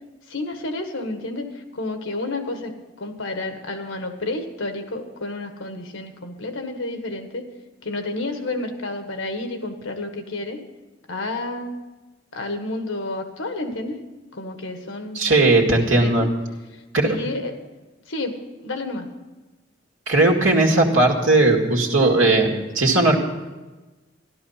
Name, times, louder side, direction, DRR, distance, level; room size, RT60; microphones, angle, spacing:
voice 1, 0.3-2.7 3.0-7.5 7.8-10.6 11.1-11.8 12.3-14.0 14.3-16.3 16.7-17.6 18.1-19.1, left 2 dB, 85° left, 6 dB, 1.6 m, -30 dB
voice 2, 15.1-16.3 16.9-17.2 20.1-23.1, right 2 dB, 90° right, 0 dB, 2.0 m, -17 dB
13.5 x 12.0 x 5.7 m, 1.2 s
head